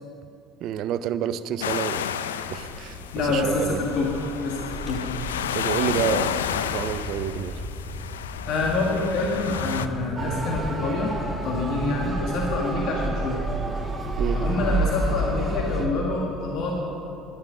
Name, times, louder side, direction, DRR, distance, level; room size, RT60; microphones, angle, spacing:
voice 1, 0.6-2.0 2.5-3.8 5.5-7.6 14.2-14.4, right 10 dB, 60° right, 14 dB, 0.5 m, -29 dB
sound 1, 1.6-9.9, left 9 dB, 80° left, 0.4 m, -31 dB
Vehicle, 2.3-12.6, left 2 dB, 20° left, 2.3 m, -38 dB
voice 2, 3.1-4.1 4.4-5.0 8.5-11.1 11.4-13.5 14.3-16.8, left 2 dB, 60° left, -1 dB, 1.6 m, -26 dB
Motor vehicle (road) / Siren, 10.2-15.9, right 2 dB, 25° right, 2.6 m, -28 dB
11.0 x 11.0 x 6.2 m, 2.8 s
hypercardioid pair, 60°, 0 cm